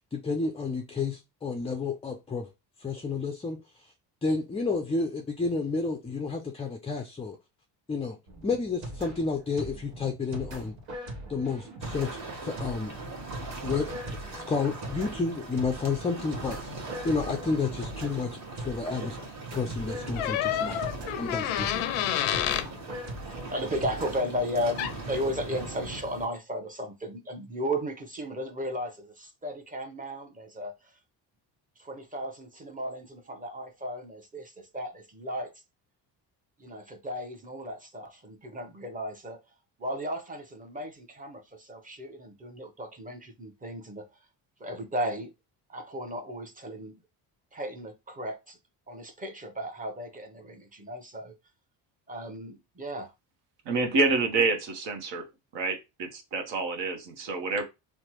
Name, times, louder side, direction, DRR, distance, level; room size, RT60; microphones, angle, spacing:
voice 1, 0.1-2.5 2.8-3.6 4.2-7.4 7.9-8.2 8.4-10.7 11.3-12.9 13.6-13.9 14.3-19.2 19.5-20.8 21.2-21.8, left 4 dB, 15° left, 0.3 m, -31 dB
sound 1, 8.3-24.2, right 1 dB, 80° right, 1.2 m, -41 dB
sound 2, 11.8-26.3, right 3 dB, 35° right, 1.2 m, -40 dB
sound 3, 20.2-22.7 24.8-25.0, left 12 dB, 85° left, 0.5 m, -29 dB
voice 2, 23.3-30.7 31.8-35.5 36.6-39.4 39.8-44.1 44.6-45.3 45.7-46.9 47.5-48.6 48.9-51.3 52.1-53.1, equal, 15° right, 0.8 m, -35 dB
voice 3, 53.7-55.2 55.5-57.6, right 3 dB, 60° right, 0.9 m, -28 dB
3.2 x 2.1 x 2.9 m
supercardioid pair, 75°, 48 cm